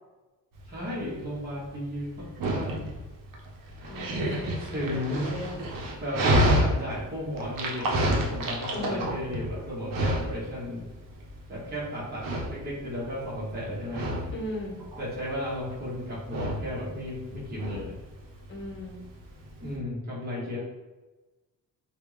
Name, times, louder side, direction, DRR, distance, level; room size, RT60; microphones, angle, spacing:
Dog, 0.6-19.8, equal, 65° right, 0.8 m, -30 dB
voice 1, 0.7-2.7 4.7-5.3 6.0-10.9 11.5-14.1 15.0-17.9 19.6-20.6, left 1 dB, 25° right, -7 dB, 1.2 m, -34 dB
voice 2, 3.8-4.8 5.1-5.6 8.7-9.1 14.3-14.8 18.5-19.0, left 1 dB, 35° left, -1 dB, 1.0 m, -37 dB
3.3 x 2.4 x 3.2 m, 1.2 s
cardioid pair, 100°, 36 cm